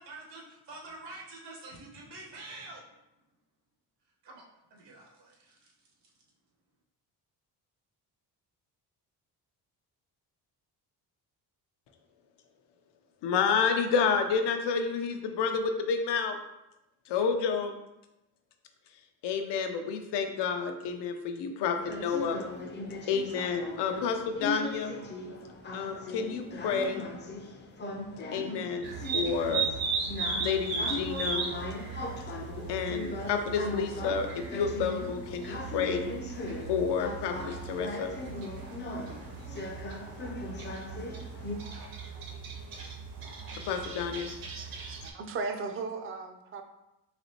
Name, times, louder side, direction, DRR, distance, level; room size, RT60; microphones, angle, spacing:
voice 1, 0.0-2.8 4.2-4.4 4.7-5.7, right 2 dB, 80° right, -2 dB, 1.2 m, -46 dB
voice 2, 13.2-16.4 17.1-17.8 19.2-22.4 23.1-24.9 25.7-27.0 28.3-29.7 30.4-31.4 32.7-36.0 36.7-38.1 43.7-44.3, left 6 dB, 85° left, 6 dB, 0.6 m, -30 dB
sound 1, 21.8-41.5, left 2 dB, 30° left, 0.4 m, -39 dB
sound 2, 28.8-45.1, right 5 dB, 60° right, 0.7 m, -37 dB
voice 3, 44.9-46.6, right 4 dB, 35° right, 6 dB, 0.4 m, -36 dB
4.1 x 2.9 x 2.8 m, 0.91 s
cardioid pair, 130°, 41 cm